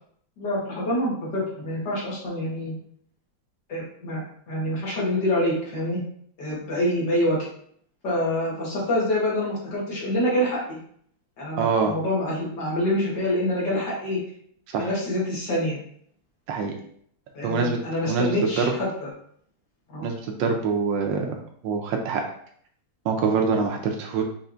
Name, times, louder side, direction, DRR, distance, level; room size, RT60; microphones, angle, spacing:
voice 1, 0.4-2.7 3.7-6.0 6.4-7.5 8.0-10.8 11.4-14.2 14.8-15.8 17.3-19.1 19.9-20.1, left 1 dB, 60° left, -5 dB, 2.0 m, -26 dB
voice 2, 11.6-11.9 14.7-14.9 16.5-16.7 17.4-17.8 18.1-18.6 20.0-21.3 21.6-22.2 23.0-24.2, right 5 dB, 75° right, 3 dB, 1.3 m, -24 dB
5.5 x 3.0 x 2.5 m, 0.62 s
omnidirectional pair, 2.1 m